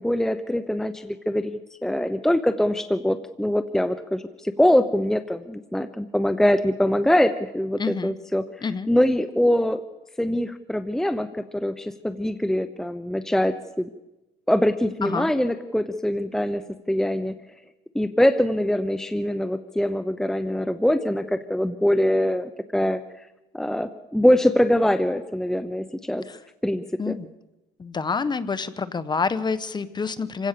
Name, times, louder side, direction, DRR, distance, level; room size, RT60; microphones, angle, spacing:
voice 1, 0.0-8.4 8.9-9.8 10.2-13.9 14.5-17.4 17.9-23.0 23.5-26.2 26.6-27.2, left 1 dB, 5° left, 11 dB, 0.9 m, -23 dB
voice 2, 7.8-8.1 8.6-8.9 15.0-15.3 26.3-26.4 27.0-27.3 27.8-30.5, left 5 dB, 25° left, 14 dB, 1.2 m, -27 dB
27.5 x 16.5 x 6.8 m, 0.99 s
cardioid pair, 110°, 17 cm